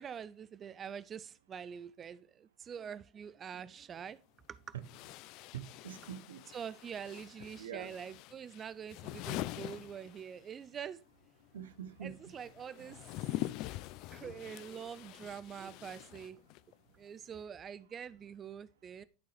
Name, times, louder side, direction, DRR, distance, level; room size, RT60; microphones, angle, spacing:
voice 1, 0.0-4.2 4.5-4.6 6.5-11.0 12.0-13.3 14.1-16.4 16.9-19.0, right 8 dB, 30° right, 0.3 m, -45 dB
sound 1, 3.9-4.0 4.8-10.6 10.9-16.7, left 17 dB, 55° left, 0.3 m, -44 dB
voice 2, 5.5-6.4 7.6-7.9 11.5-12.3 12.8-12.9, right 9 dB, 85° right, 0.7 m, -44 dB
11.5 x 3.8 x 3.2 m
hypercardioid pair, 95°, 0 cm